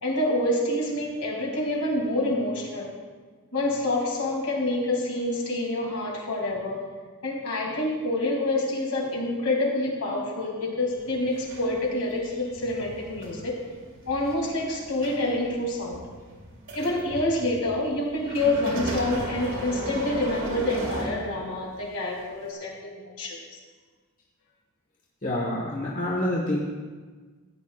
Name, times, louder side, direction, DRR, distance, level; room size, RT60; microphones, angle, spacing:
voice 1, 0.0-2.9 3.5-6.8 7.2-13.6 14.1-16.0 16.7-23.4, left 1 dB, 70° left, -3 dB, 2.8 m, -27 dB
sound 1, 10.9-21.7 22.4-22.5, right 1 dB, 60° right, 2.2 m, -36 dB
voice 2, 25.2-26.6, left 1 dB, 40° left, -4 dB, 1.4 m, -27 dB
15.5 x 9.2 x 2.4 m, 1.4 s
head